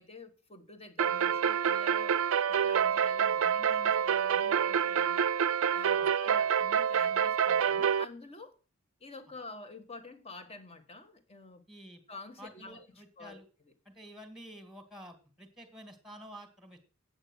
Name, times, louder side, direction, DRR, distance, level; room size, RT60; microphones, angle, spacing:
voice 1, 0.0-2.1 2.4-5.2 5.7-8.6 9.0-11.6 12.1-13.4, left 2 dB, 25° left, 1.5 m, -48 dB
sound 1, 1.0-8.0, right 8 dB, 65° right, 0.4 m, -27 dB
voice 2, 11.7-12.0 12.4-13.5 13.9-16.8, equal, ahead, 2.0 m, -50 dB
8.7 x 8.3 x 6.2 m
head